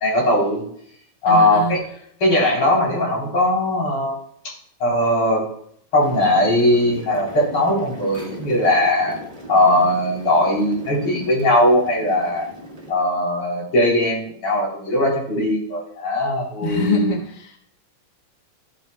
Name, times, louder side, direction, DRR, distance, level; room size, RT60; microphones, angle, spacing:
voice 1, 0.0-0.7 1.2-1.8 2.2-4.2 4.4-4.5 4.8-5.5 5.9-9.2 9.5-12.5 12.9-17.0, left 1 dB, 35° left, -4 dB, 3.9 m, -19 dB
voice 2, 1.2-1.8 16.6-17.6, left 2 dB, 65° left, 1 dB, 1.0 m, -24 dB
sound 1, 6.0-12.9, equal, 15° right, 1.7 m, -38 dB
14.0 x 9.1 x 2.2 m, 0.65 s
omnidirectional pair, 4.0 m